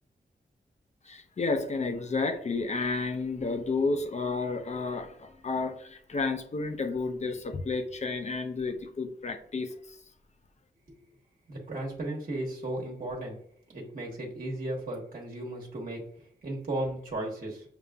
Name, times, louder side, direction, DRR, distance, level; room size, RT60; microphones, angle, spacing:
voice 1, 1.1-10.0, left 3 dB, 40° left, 7 dB, 0.6 m, -31 dB
voice 2, 11.5-13.3 13.7-16.0 16.4-17.6, right 1 dB, 55° right, -3 dB, 1.2 m, -35 dB
6.7 x 2.5 x 2.2 m, 0.63 s
wide cardioid pair, 115°, 18 cm